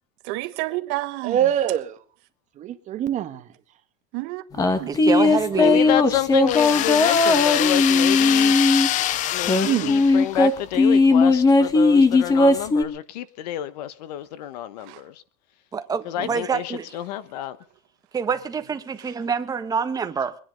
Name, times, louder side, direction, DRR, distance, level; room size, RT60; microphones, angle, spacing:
voice 1, 0.2-1.4 4.1-4.9 14.9-15.0, right 19 dB, 55° right, 1.4 m, -30 dB
voice 2, 1.2-2.0 2.6-3.5 9.6-10.0 16.2-16.3, right 10 dB, 35° right, 1.5 m, -24 dB
sound 1, 4.5-8.9 9.5-12.8, left 3 dB, 15° left, 1.6 m, -18 dB
voice 3, 4.9-5.8 15.7-16.8 18.1-20.4, right 6 dB, 20° right, 1.3 m, -26 dB
voice 4, 5.5-8.6 9.3-15.1 16.0-17.6, left 12 dB, 80° left, 1.3 m, -29 dB
sound 2, 6.5-10.6, left 13 dB, 40° left, 0.7 m, -25 dB
23.0 x 10.0 x 5.3 m
supercardioid pair, 135°, 20 cm